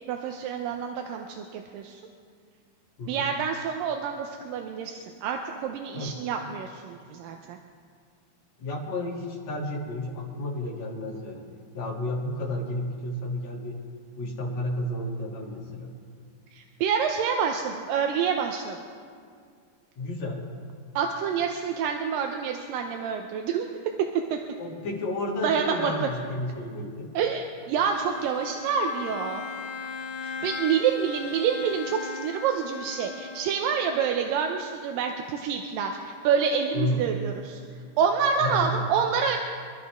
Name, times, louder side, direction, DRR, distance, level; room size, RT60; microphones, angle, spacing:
voice 1, 0.1-2.0 3.1-7.6 16.6-18.8 21.0-23.7 24.3-24.4 25.4-25.9 27.1-29.4 30.2-37.6 38.0-39.4, right 7 dB, 80° right, 3 dB, 2.4 m, -27 dB
voice 2, 8.6-11.5 11.7-13.8 14.2-15.9 20.0-20.4 24.6-27.1 36.7-37.0 38.4-38.9, left 1 dB, 55° left, -4 dB, 3.8 m, -31 dB
Bowed string instrument, 27.8-34.2, left 5 dB, 80° left, 1.3 m, -38 dB
26.5 x 13.0 x 3.6 m, 2.2 s
omnidirectional pair, 4.1 m